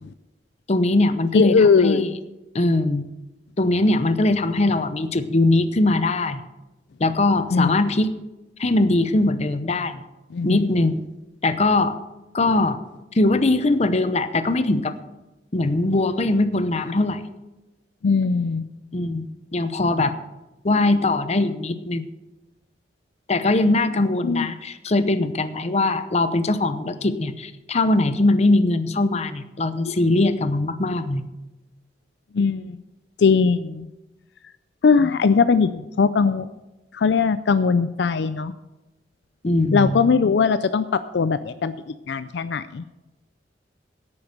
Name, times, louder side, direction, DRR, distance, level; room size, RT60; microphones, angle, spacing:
voice 1, 0.7-2.1 2.5-3.0 3.6-6.4 7.0-8.1 8.6-10.0 10.4-11.0 11.4-12.0 12.3-12.8 13.1-14.9 15.5-17.2 18.9-20.2 20.6-22.1 23.3-31.3 39.4-40.0, left 2 dB, 40° left, 12 dB, 0.8 m, -21 dB
voice 2, 1.3-2.0 7.5-7.8 10.3-10.7 18.0-18.7 24.2-24.5 29.8-30.2 32.3-32.8 33.2-33.9 34.8-36.5 36.9-38.5 39.7-42.9, left 5 dB, 70° left, 13 dB, 0.4 m, -20 dB
10.5 x 8.7 x 6.6 m, 1.0 s
head